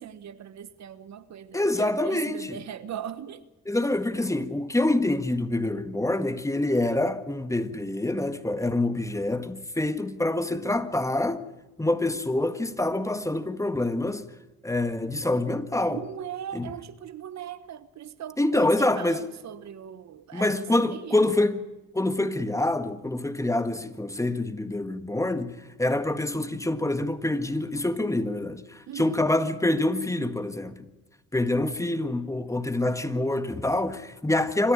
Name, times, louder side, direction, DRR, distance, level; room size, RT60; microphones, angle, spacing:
voice 1, 0.0-3.4 15.9-21.2 28.9-29.2, right 9 dB, 65° right, 1.3 m, -39 dB
voice 2, 1.5-2.6 3.7-11.4 11.8-14.2 14.6-16.0 16.5-16.7 18.4-19.2 20.3-21.6 21.9-30.9 31.3-34.7, left 2 dB, 10° left, 1.6 m, -26 dB
26.5 x 14.0 x 8.8 m
cardioid pair, 90°, 30 cm